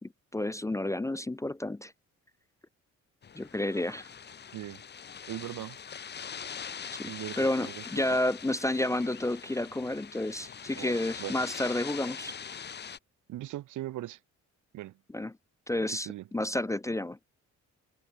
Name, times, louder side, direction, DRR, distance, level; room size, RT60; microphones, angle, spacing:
voice 1, 0.0-1.9 3.3-4.1 7.0-7.1 7.4-12.3 15.1-15.3 15.7-17.2, left 1 dB, 10° left, 0.5 m, -31 dB
sound 1, 3.2-13.0, left 7 dB, 35° left, 0.9 m, -43 dB
voice 2, 5.3-5.8 7.0-8.2 10.7-11.4 13.3-14.2 14.7-14.9 16.0-16.2, right 14 dB, 80° right, 1.3 m, -39 dB
cardioid pair, 90°, 30 cm